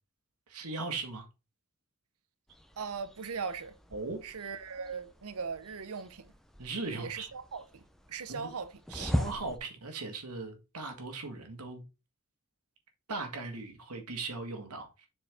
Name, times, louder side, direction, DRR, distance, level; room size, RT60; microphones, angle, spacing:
voice 1, 0.5-1.3 3.9-4.2 6.6-7.3 8.3-8.5 8.9-11.8 13.1-15.1, right 3 dB, 90° right, 1.7 m, -38 dB
sound 1, 2.5-9.6, equal, ahead, 0.6 m, -40 dB
voice 2, 2.8-3.7 4.2-6.3 7.0-7.8 8.1-9.1, right 5 dB, 70° right, 0.7 m, -39 dB
7.0 x 4.6 x 3.5 m
head